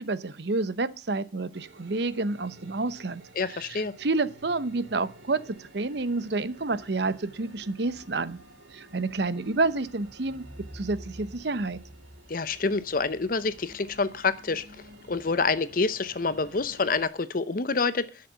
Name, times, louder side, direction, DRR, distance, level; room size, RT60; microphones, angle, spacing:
voice 1, 0.0-3.2 3.6-8.4 8.7-10.4 10.7-11.8, right 3 dB, 60° right, 0.8 m, -29 dB
sound 1, 1.5-17.0, right 1 dB, 85° right, 2.8 m, -50 dB
voice 2, 3.4-3.9 12.3-14.7 15.1-18.1, left 4 dB, 50° left, 0.7 m, -27 dB
11.5 x 6.6 x 8.0 m
head